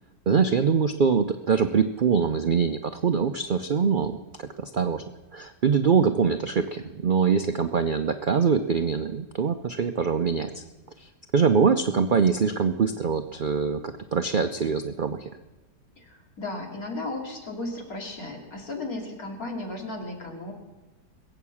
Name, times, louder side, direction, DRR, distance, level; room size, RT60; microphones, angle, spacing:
voice 1, 0.3-4.2 4.6-5.0 5.3-10.5 11.0-13.8 14.1-15.3, right 6 dB, 80° right, 8 dB, 0.4 m, -23 dB
voice 2, 16.0-20.5, left 2 dB, 60° left, 0 dB, 3.1 m, -35 dB
21.5 x 8.1 x 7.1 m, 1.1 s
omnidirectional pair, 1.7 m